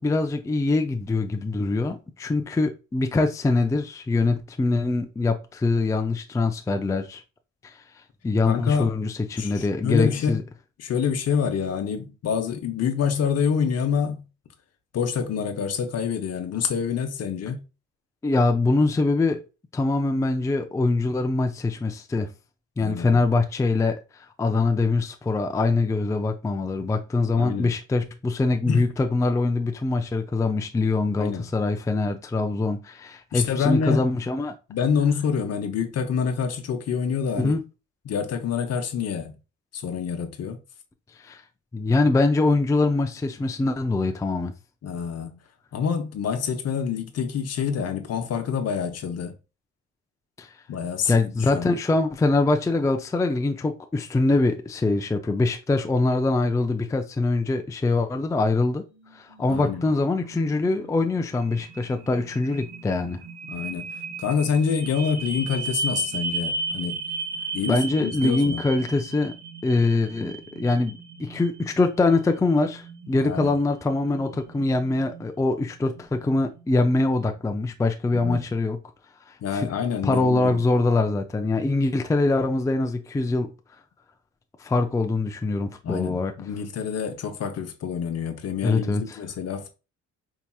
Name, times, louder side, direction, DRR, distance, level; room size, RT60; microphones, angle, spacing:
voice 1, 0.0-7.2 7.6-7.8 8.2-10.4 18.2-19.4 19.7-22.3 22.8-34.5 37.4-37.6 41.2-41.4 41.7-44.5 50.4-50.5 51.1-58.8 59.1-63.2 67.7-69.3 69.6-78.8 79.5-79.7 80.0-83.5 84.6-86.3 88.6-89.2, left 3 dB, 10° left, 0.4 m, -23 dB
voice 2, 8.5-8.9 9.4-10.4 10.8-14.2 14.9-17.6 22.8-23.3 27.4-27.7 28.7-28.9 31.1-31.4 33.3-34.0 34.7-37.5 38.1-39.4 39.7-40.6 44.8-45.4 45.7-49.3 50.7-51.7 59.5-59.8 63.5-63.9 64.2-67.0 67.5-68.7 73.2-73.5 78.1-78.4 79.4-80.6 85.8-89.7, left 6 dB, 55° left, 0.8 m, -27 dB
sound 1, 58.9-77.0, right 3 dB, 65° right, 1.0 m, -36 dB
4.6 x 2.8 x 2.3 m
cardioid pair, 90°, 30 cm